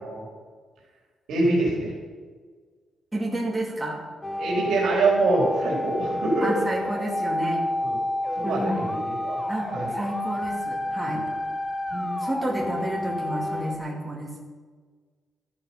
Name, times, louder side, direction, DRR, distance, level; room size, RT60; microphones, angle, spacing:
voice 1, 1.3-1.9 4.4-6.5 7.8-7.9 8.4-9.4 9.7-9.9 11.0-11.2, right 2 dB, 70° right, -3 dB, 3.6 m, -24 dB
voice 2, 3.1-4.0 6.4-7.6 8.4-8.8 9.5-11.2 11.9-14.4, right 1 dB, 10° right, -2 dB, 2.4 m, -30 dB
sound 1, 4.2-13.8, left 1 dB, 15° left, 1.0 m, -29 dB
13.0 x 11.5 x 5.6 m, 1.5 s
cardioid pair, 175°, 0 cm